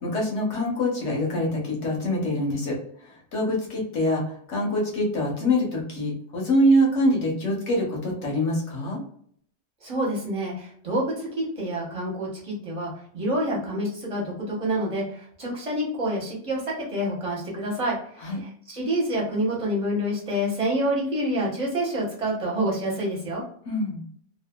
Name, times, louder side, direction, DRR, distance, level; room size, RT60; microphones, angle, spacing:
voice 1, 0.0-9.0 18.2-18.4 23.7-24.0, equal, 70° left, -1 dB, 1.2 m, -25 dB
voice 2, 9.8-23.4, equal, 30° right, -4 dB, 1.1 m, -27 dB
2.7 x 2.5 x 2.2 m, 0.63 s
omnidirectional pair, 1.2 m